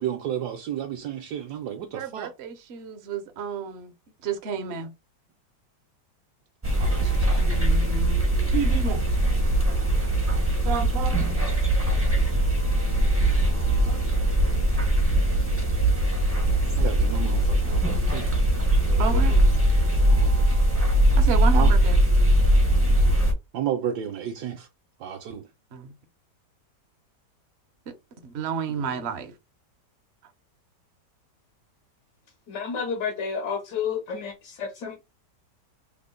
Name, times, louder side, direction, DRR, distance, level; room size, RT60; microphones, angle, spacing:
voice 1, 0.0-2.3 6.8-7.4 16.8-18.3 18.9-19.5 20.1-20.6 21.5-21.7 23.5-24.7 25.0-25.5 28.7-28.8, right 9 dB, 75° right, 1.1 m, -32 dB
voice 2, 1.9-3.9 4.2-4.9 7.4-8.2 8.5-9.0 10.6-11.3 12.2-12.3 13.9-14.0 19.0-19.3 21.2-22.0 25.7-25.9 28.2-29.3, right 6 dB, 60° right, 0.7 m, -31 dB
sound 1, 6.6-23.3, right 1 dB, 20° right, 0.4 m, -21 dB
voice 3, 32.5-35.0, left 6 dB, 80° left, 1.4 m, -30 dB
3.6 x 2.0 x 3.6 m
omnidirectional pair, 1.9 m